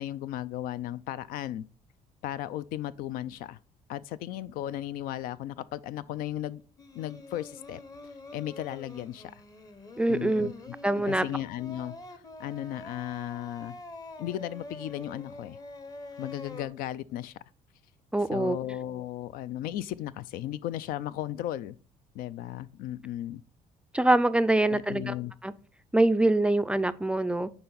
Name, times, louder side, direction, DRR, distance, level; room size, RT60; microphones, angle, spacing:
voice 1, 0.0-1.6 2.2-3.6 3.9-6.6 6.9-7.8 8.3-9.3 10.1-10.5 11.1-13.8 14.2-15.6 16.2-17.4 18.3-21.8 22.1-23.4 24.6-25.3, left 13 dB, 80° left, 0.4 m, -35 dB
Singing, 6.8-16.7, left 2 dB, 25° left, 0.8 m, -45 dB
voice 2, 10.0-10.5 10.8-11.3 18.1-18.6 23.9-25.1 25.4-25.5 25.9-27.5, right 2 dB, 5° right, 0.3 m, -24 dB
6.8 x 4.3 x 3.9 m
cardioid pair, 105°, 15 cm